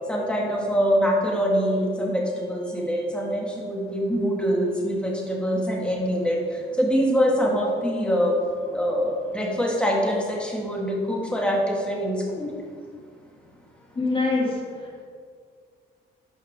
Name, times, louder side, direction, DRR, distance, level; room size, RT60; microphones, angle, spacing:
voice 1, 0.1-2.2 2.5-6.4 6.8-8.3 8.7-12.5, equal, 5° left, -2 dB, 2.0 m, -24 dB
voice 2, 13.9-15.0, left 3 dB, 25° left, -3 dB, 2.4 m, -25 dB
11.5 x 5.7 x 3.6 m, 2.1 s
cardioid pair, 90°, 20 cm